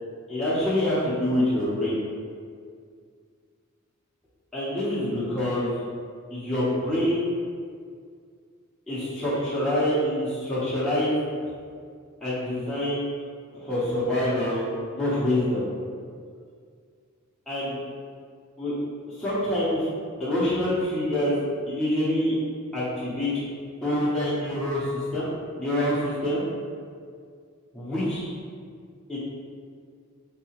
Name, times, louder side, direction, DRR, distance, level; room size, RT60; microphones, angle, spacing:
voice 1, 0.3-2.0 4.5-5.8 6.3-7.4 8.9-11.2 12.2-13.1 13.5-14.7 14.9-15.6 17.5-17.8 18.6-18.7 19.2-19.9 20.2-22.3 22.7-23.4 23.8-26.5 27.7-28.3 29.1-29.2, left 1 dB, 5° left, -12 dB, 0.7 m, -26 dB
4.0 x 2.8 x 2.9 m, 2.1 s
head